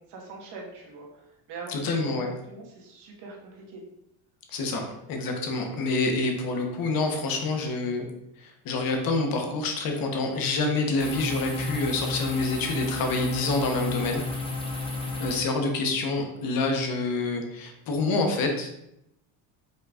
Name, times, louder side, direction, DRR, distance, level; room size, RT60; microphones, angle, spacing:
voice 1, 0.0-3.8, right 3 dB, 60° right, -1 dB, 1.4 m, -43 dB
voice 2, 1.7-2.3 4.5-8.0 8.4-14.2 15.2-18.7, left 3 dB, 50° left, 3 dB, 1.0 m, -27 dB
sound 1, 11.0-15.4, left 2 dB, 10° left, 0.6 m, -32 dB
5.4 x 3.7 x 2.4 m, 0.82 s
cardioid pair, 140°, 46 cm